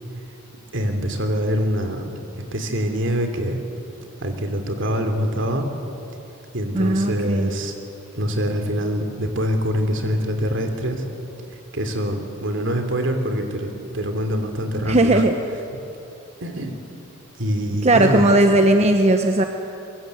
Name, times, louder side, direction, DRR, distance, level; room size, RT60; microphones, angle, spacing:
voice 1, 0.7-2.1 2.5-3.6 4.2-5.7 6.5-7.7 8.1-11.0 11.7-15.2 16.4-16.8 17.4-18.3, equal, 65° right, 5 dB, 3.0 m, -24 dB
voice 2, 6.7-7.5 14.9-15.3 17.8-19.4, right 1 dB, 35° right, 5 dB, 1.0 m, -17 dB
23.0 x 22.5 x 8.0 m, 2.8 s
head